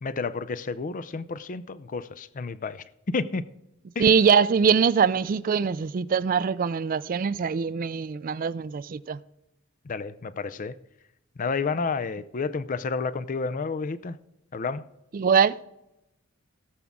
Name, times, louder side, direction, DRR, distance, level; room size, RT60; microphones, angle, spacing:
voice 1, 0.0-3.4 4.0-4.1 9.8-10.8 11.4-14.2 14.5-14.8, left 4 dB, 40° left, 0.5 m, -30 dB
voice 2, 4.0-9.2 15.1-15.6, right 6 dB, 45° right, 0.4 m, -22 dB
17.5 x 7.2 x 3.6 m
head